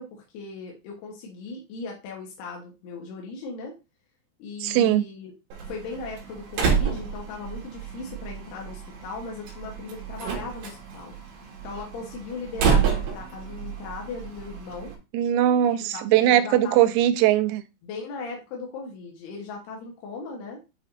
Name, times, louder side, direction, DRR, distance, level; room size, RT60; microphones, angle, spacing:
voice 1, 0.0-3.8 4.4-5.3 5.7-11.1 11.6-14.9 15.7-16.7 17.8-20.6, left 4 dB, 70° left, 0 dB, 2.7 m, -38 dB
voice 2, 4.6-5.0 10.3-10.4 15.1-17.6, right 12 dB, 90° right, 9 dB, 3.4 m, -20 dB
Slam, 5.5-14.9, right 6 dB, 60° right, 3.3 m, -29 dB
9.5 x 5.0 x 2.6 m, 0.26 s
omnidirectional pair, 5.9 m